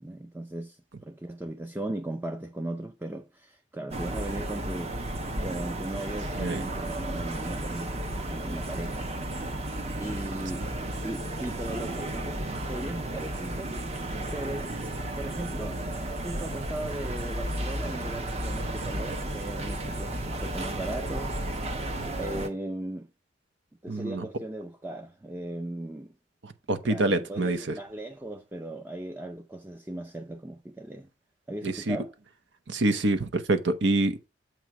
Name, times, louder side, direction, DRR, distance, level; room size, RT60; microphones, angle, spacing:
voice 1, 0.0-4.9 5.4-9.4 10.0-10.7 11.0-13.7 14.3-14.7 15.2-15.8 16.2-21.9 22.2-23.1 23.8-26.1 26.8-31.1 31.5-32.1, right 1 dB, 10° right, 0.5 m, -37 dB
sound 1, 3.9-22.5, right 1 dB, 35° right, 1.1 m, -33 dB
voice 2, 6.4-6.7 23.9-24.3 26.4-27.7 31.6-32.0 32.7-34.3, right 2 dB, 70° right, 0.8 m, -26 dB
7.9 x 3.1 x 5.9 m
head